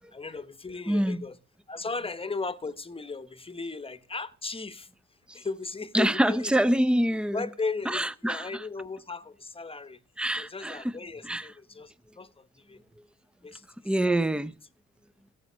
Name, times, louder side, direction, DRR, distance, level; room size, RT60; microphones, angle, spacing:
voice 1, 0.1-1.4 1.7-4.9 5.3-6.6 7.3-10.0 10.4-12.8 13.4-14.2, left 4 dB, 20° left, 1.0 m, -36 dB
voice 2, 0.9-1.3 5.3-5.4 5.9-7.4 7.9-8.6 10.2-10.9 11.2-11.5 13.8-14.5, right 1 dB, 5° right, 0.6 m, -26 dB
15.0 x 7.6 x 6.2 m
cardioid pair, 90°, 30 cm